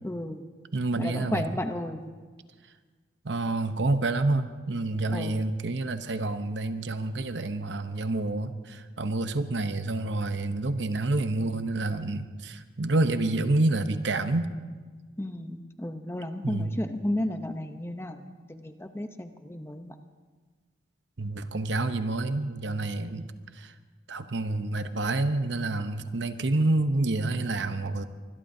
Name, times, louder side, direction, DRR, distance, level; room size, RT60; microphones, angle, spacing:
voice 1, 0.0-0.5 1.0-2.1 5.1-5.5 15.2-20.0, left 1 dB, 15° left, 7 dB, 0.7 m, -33 dB
voice 2, 0.7-1.5 3.2-14.5 16.4-16.7 21.2-23.3 23.6-23.7 24.1-28.0, right 2 dB, 75° right, 9 dB, 0.9 m, -28 dB
24.5 x 21.0 x 2.7 m, 1.5 s
head